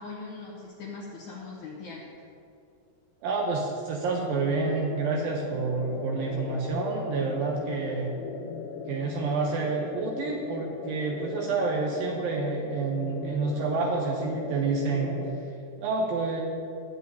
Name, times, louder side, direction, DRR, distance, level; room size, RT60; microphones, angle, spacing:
voice 1, 0.0-2.0, left 4 dB, 70° left, -4 dB, 1.8 m, -40 dB
voice 2, 3.2-8.1 8.9-15.2 15.8-16.4, right 4 dB, 75° right, 0 dB, 2.3 m, -28 dB
sound 1, 4.1-15.5, left 5 dB, 85° left, 1.9 m, -38 dB
20.0 x 8.2 x 2.8 m, 2.6 s
omnidirectional pair, 4.7 m